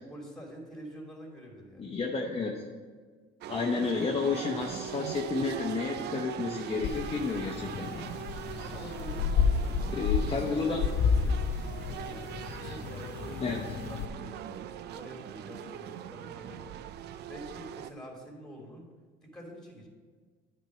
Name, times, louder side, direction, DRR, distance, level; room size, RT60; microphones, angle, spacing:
voice 1, 0.0-1.9 8.7-11.5 11.9-12.3 12.6-16.8 17.3-19.0 19.2-19.9, equal, 5° left, -1 dB, 2.8 m, -47 dB
voice 2, 1.8-2.6 3.5-8.1 9.9-10.8 13.4-13.6, left 4 dB, 30° left, 0 dB, 0.9 m, -31 dB
sound 1, 3.4-17.9, right 10 dB, 65° right, 0.4 m, -41 dB
sound 2, 6.8-14.1, left 6 dB, 65° left, 0.7 m, -31 dB
9.3 x 4.5 x 6.4 m, 1.5 s
supercardioid pair, 90°, 19 cm